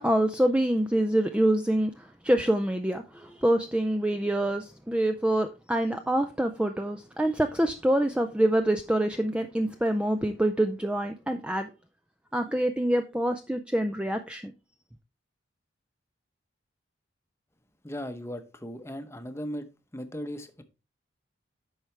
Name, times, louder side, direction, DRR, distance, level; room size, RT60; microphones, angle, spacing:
voice 1, 0.0-11.7 12.3-14.5, right 1 dB, 5° right, 0.4 m, -26 dB
voice 2, 17.8-20.6, equal, 15° left, 0.8 m, -37 dB
10.0 x 6.0 x 3.3 m
head